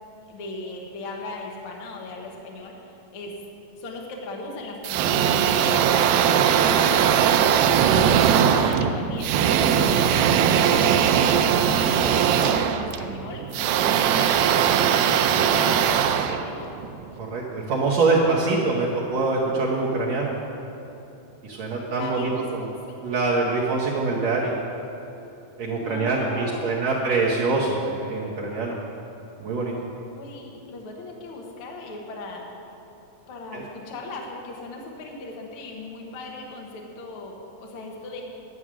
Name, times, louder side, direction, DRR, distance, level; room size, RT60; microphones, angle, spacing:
voice 1, 0.3-3.4 3.8-16.7 21.9-22.9 25.6-26.9 30.0-32.5 33.3-38.2, left 2 dB, 55° left, 0 dB, 1.6 m, -38 dB
sound 1, 4.8-17.1, right 8 dB, 85° right, 2.4 m, -20 dB
voice 2, 17.2-20.3 21.4-22.2 23.0-24.5 25.6-28.8 29.4-29.7 33.5-33.6, right 3 dB, 65° right, -4 dB, 1.8 m, -24 dB
11.0 x 8.6 x 6.2 m, 2.9 s
omnidirectional pair, 4.2 m